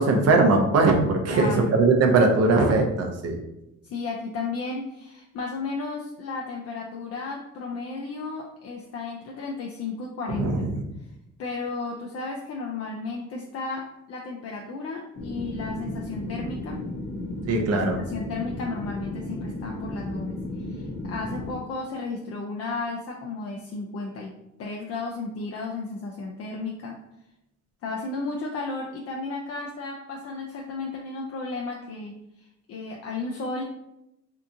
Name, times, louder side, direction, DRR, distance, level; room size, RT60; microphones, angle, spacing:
voice 1, 0.0-3.3 10.3-10.7 17.5-18.0, right 3 dB, 55° right, 4 dB, 0.6 m, -20 dB
voice 2, 1.3-1.9 3.9-10.7 11.4-16.8 17.7-24.3 24.6-27.0 27.8-33.6, left 3 dB, 55° left, 0 dB, 0.4 m, -34 dB
sound 1, 15.1-21.6, left 1 dB, 35° left, 0.7 m, -34 dB
2.8 x 2.3 x 2.5 m, 0.88 s
cardioid pair, 90°, 30 cm